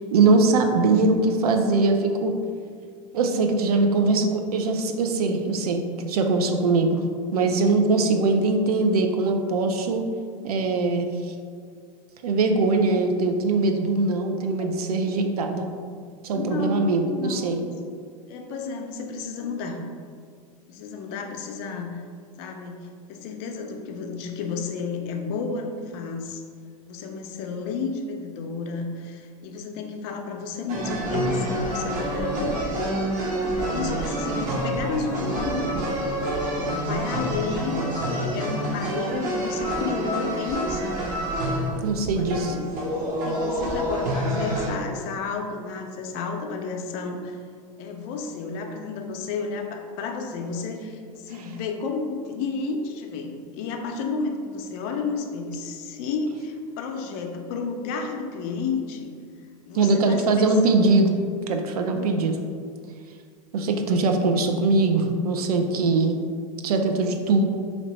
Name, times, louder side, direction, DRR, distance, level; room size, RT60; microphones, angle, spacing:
voice 1, 0.1-2.3 3.1-7.0 7.3-10.0 10.4-11.1 12.2-15.6 16.2-17.6 41.8-42.6 59.7-61.2 61.5-62.4 63.5-66.2 66.6-67.4, right 3 dB, 80° right, 5 dB, 0.5 m, -21 dB
voice 2, 16.3-17.6 18.3-19.8 20.7-22.0 22.4-26.4 26.9-32.6 33.7-36.0 36.3-41.0 42.0-42.6 43.2-47.4 47.8-59.1 59.7-60.5 61.9-62.2, left 4 dB, 50° left, 3 dB, 0.6 m, -32 dB
sound 1, 30.7-44.7, right 1 dB, 40° right, 1.1 m, -27 dB
3.0 x 2.9 x 4.2 m, 2.1 s
hypercardioid pair, 100°, 19 cm